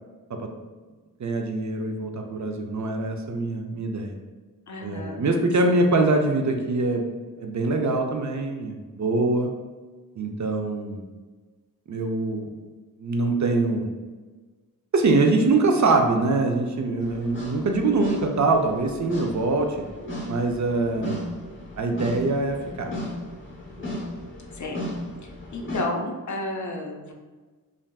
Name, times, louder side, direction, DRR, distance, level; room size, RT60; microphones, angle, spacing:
voice 1, 1.2-4.2 4.8-7.1 7.4-9.5 10.2-11.0 11.9-12.5 13.0-13.9 14.9-19.9 20.3-21.3 21.8-22.9, right 3 dB, 55° right, 3 dB, 0.4 m, -23 dB
voice 2, 4.7-5.3 24.5-27.1, left 2 dB, 55° left, 1 dB, 0.5 m, -32 dB
sound 1, 17.0-25.8, equal, 35° left, 0.8 m, -36 dB
3.3 x 2.5 x 2.3 m, 1.3 s
wide cardioid pair, 55°, 35 cm